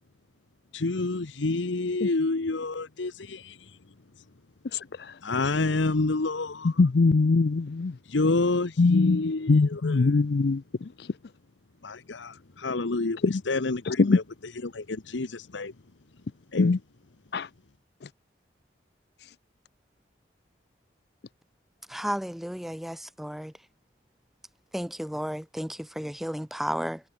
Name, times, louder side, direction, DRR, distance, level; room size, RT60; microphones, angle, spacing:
voice 1, 0.7-3.6 5.2-6.8 8.1-10.1 11.8-13.2 13.5-14.2 14.6-15.7 16.5-16.7, left 3 dB, 90° left, 1.0 m, -28 dB
voice 2, 4.7-5.1 6.8-7.9 8.8-9.2 9.5-10.9 13.2-13.4 13.9-14.2 16.6-16.8 17.3-17.5, left 3 dB, 60° left, 0.5 m, -22 dB
voice 3, 21.9-23.5 24.7-27.0, equal, ahead, 0.3 m, -33 dB
head